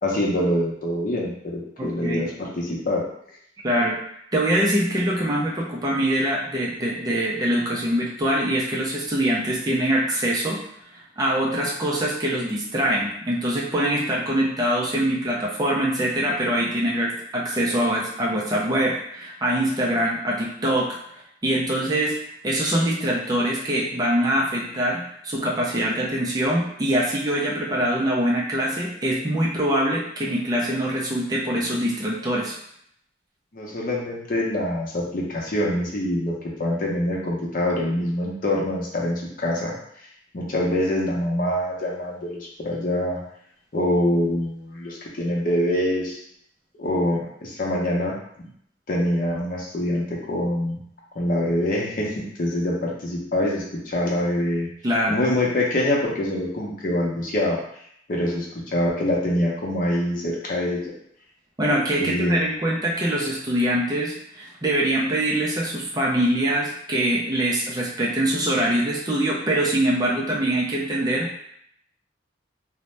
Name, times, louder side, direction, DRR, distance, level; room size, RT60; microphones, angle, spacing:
voice 1, 0.0-3.0 33.5-36.3 36.6-39.7 40.3-43.2 43.7-46.2 46.8-48.1 48.9-50.8 51.2-52.1 52.4-54.7 55.1-57.6 58.1-60.9 62.0-62.5, left 1 dB, 45° left, -3 dB, 0.6 m, -25 dB
voice 2, 1.8-2.3 3.6-4.0 4.3-10.6 11.2-22.1 22.4-32.6 54.8-55.2 61.6-71.4, right 1 dB, 20° right, -3 dB, 0.4 m, -24 dB
2.6 x 2.0 x 3.1 m, 0.69 s
head